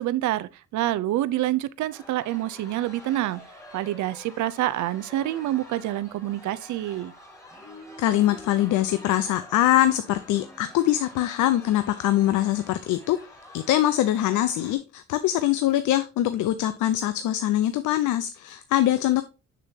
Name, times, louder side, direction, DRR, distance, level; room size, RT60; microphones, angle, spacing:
voice 1, 0.0-3.5 3.7-7.1, right 14 dB, 70° right, 0.5 m, -27 dB
sound 1, 1.9-14.8, left 1 dB, 10° left, 2.1 m, -47 dB
voice 2, 8.0-13.2 13.5-19.2, left 13 dB, 80° left, 0.6 m, -23 dB
6.8 x 6.3 x 2.7 m
cardioid pair, 90°, 30 cm